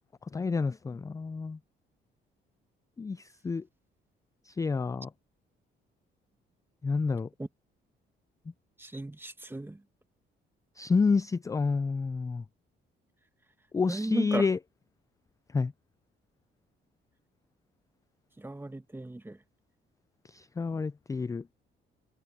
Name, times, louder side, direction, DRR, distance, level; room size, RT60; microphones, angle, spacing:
voice 1, 0.3-1.6 3.0-3.6 4.5-5.1 6.8-7.3 10.8-12.4 13.7-14.6 15.5-15.7 20.2-21.4, left 4 dB, 15° left, 0.3 m, -29 dB
voice 2, 8.8-9.8 13.9-14.4 18.4-19.4, right 2 dB, 10° right, 1.4 m, -35 dB
cardioid pair, 90°, 20 cm